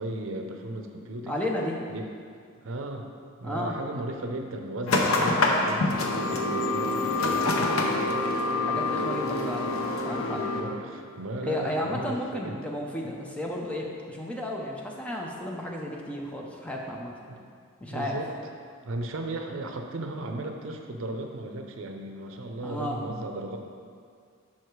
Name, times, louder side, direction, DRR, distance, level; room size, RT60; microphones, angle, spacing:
voice 1, 0.0-1.4 1.9-2.2 2.6-3.1 3.4-8.3 10.3-12.6 17.3-17.4 17.9-18.3 18.8-23.6, right 1 dB, 70° right, 4 dB, 0.6 m, -36 dB
voice 2, 1.3-1.8 3.4-3.8 8.7-10.4 11.4-17.1 17.8-18.2 22.6-23.0, left 1 dB, 5° left, -2 dB, 0.5 m, -33 dB
sound 1, 4.9-10.6, left 2 dB, 80° left, 0.7 m, -26 dB
5.8 x 4.7 x 4.6 m, 2.2 s
head